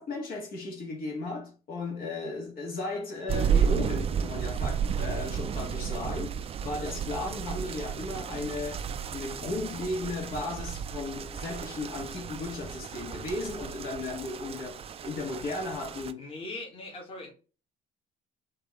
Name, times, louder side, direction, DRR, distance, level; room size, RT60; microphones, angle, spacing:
voice 1, 0.0-16.3, left 2 dB, 60° left, 1.9 m, -35 dB
sound 1, 3.3-16.1, right 7 dB, 35° right, 0.4 m, -32 dB
voice 2, 16.2-17.3, left 2 dB, 35° left, 1.8 m, -40 dB
4.9 x 2.9 x 3.5 m
cardioid pair, 110°, 17 cm